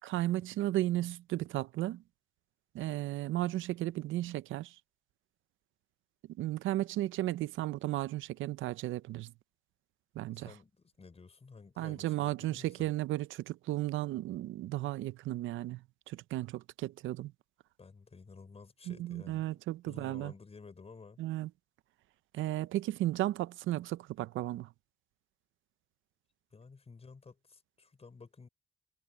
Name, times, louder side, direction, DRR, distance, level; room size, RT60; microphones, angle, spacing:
voice 1, 0.0-2.0 2.7-4.7 6.4-9.3 10.2-10.5 11.8-15.8 16.1-17.3 18.9-20.3 21.2-21.5 22.3-24.7, right 15 dB, 80° right, 0.6 m, -34 dB
voice 2, 10.3-12.9 17.8-19.5 19.8-21.2 26.5-28.5, left 4 dB, 30° left, 5.6 m, -53 dB
cardioid pair, 90°, 20 cm